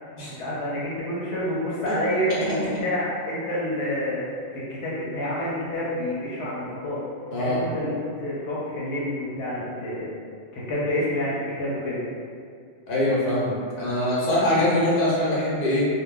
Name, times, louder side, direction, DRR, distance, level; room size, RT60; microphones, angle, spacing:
voice 1, 0.4-4.2 4.5-7.0 7.4-10.1 10.5-12.0, left 1 dB, 80° left, -7 dB, 0.9 m, -28 dB
voice 2, 7.3-7.6 12.9-15.9, left 1 dB, 55° left, -8 dB, 1.0 m, -23 dB
2.2 x 2.1 x 3.5 m, 2.2 s
omnidirectional pair, 1.2 m